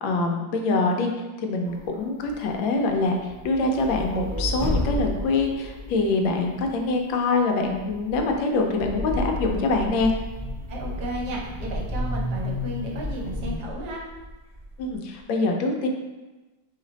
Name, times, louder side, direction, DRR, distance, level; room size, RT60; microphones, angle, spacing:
voice 1, 0.0-1.1 1.4-3.2 3.4-10.1 14.8-15.9, left 3 dB, 80° left, 3 dB, 1.4 m, -24 dB
sound 1, 1.7-2.5 2.8-7.0 7.6-13.6, left 1 dB, 60° left, 0.4 m, -32 dB
sound 2, 10.3-15.2, right 1 dB, 10° right, 1.0 m, -38 dB
voice 2, 10.7-14.0, equal, 65° right, -2 dB, 1.2 m, -33 dB
4.1 x 3.3 x 3.9 m, 1.1 s
omnidirectional pair, 2.1 m